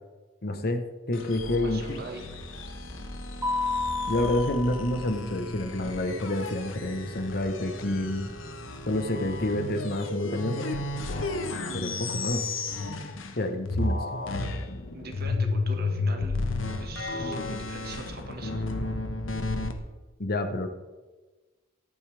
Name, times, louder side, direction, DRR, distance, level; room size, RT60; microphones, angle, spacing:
voice 1, 0.4-0.8 1.1-2.0 4.1-8.3 8.9-10.6 11.7-12.4 13.4-14.5 17.2-17.3 20.2-20.7, left 1 dB, 50° left, 8 dB, 1.1 m, -29 dB
sound 1, 1.1-13.4 13.7-19.7, left 2 dB, 80° left, 1.2 m, -33 dB
voice 2, 1.6-2.3 14.9-16.5 16.8-18.7, right 3 dB, 50° right, 3 dB, 1.7 m, -42 dB
Mallet percussion, 3.4-5.5, left 3 dB, 10° right, 0.9 m, -31 dB
14.0 x 11.0 x 3.5 m, 1.2 s
head